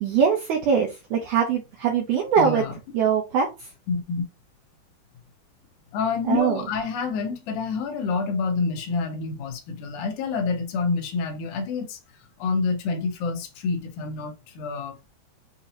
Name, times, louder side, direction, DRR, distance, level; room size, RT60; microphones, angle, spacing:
voice 1, 0.0-2.6 2.9-3.7 6.2-6.6, right 7 dB, 85° right, 1.8 m, -22 dB
voice 2, 2.4-2.7 3.9-4.2 5.9-12.0 12.4-15.1, left 4 dB, 75° left, 1.8 m, -28 dB
6.7 x 2.7 x 2.8 m
omnidirectional pair, 4.6 m